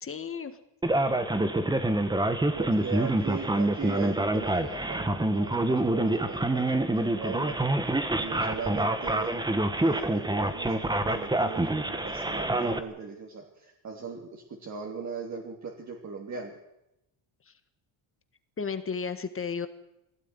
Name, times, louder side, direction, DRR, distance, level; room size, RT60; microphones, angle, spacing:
voice 1, 0.0-0.6 17.5-17.6 18.6-19.7, left 5 dB, 25° left, 10 dB, 1.6 m, -33 dB
Male speech man speaking, 0.8-12.8, right 1 dB, 10° right, 1.4 m, -27 dB
voice 2, 2.5-9.4 9.7-16.6, right 5 dB, 35° right, 0 dB, 3.1 m, -39 dB
21.5 x 16.5 x 9.8 m, 0.88 s
cardioid pair, 150°, 48 cm